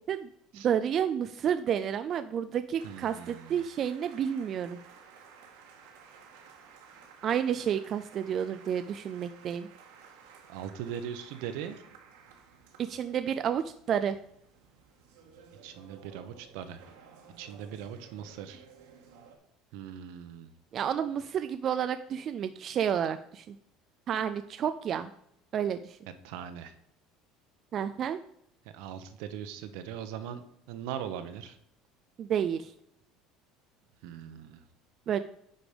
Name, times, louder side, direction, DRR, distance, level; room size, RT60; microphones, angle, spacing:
voice 1, 0.0-4.8 7.2-9.7 12.8-14.2 20.7-23.6 24.1-25.1 25.5-26.0 27.7-28.2 32.2-32.7 35.1-35.2, right 8 dB, 30° right, 9 dB, 0.3 m, -30 dB
voice 2, 2.8-3.6 10.5-11.8 15.6-16.8 17.4-18.6 19.7-20.5 26.2-26.7 28.7-31.6 34.0-34.6, right 9 dB, 70° right, 10 dB, 1.0 m, -40 dB
sound 1, 2.8-19.4, right 6 dB, 90° right, 1.9 m, -55 dB
9.8 x 5.2 x 5.1 m, 0.74 s
cardioid pair, 170°, 0 cm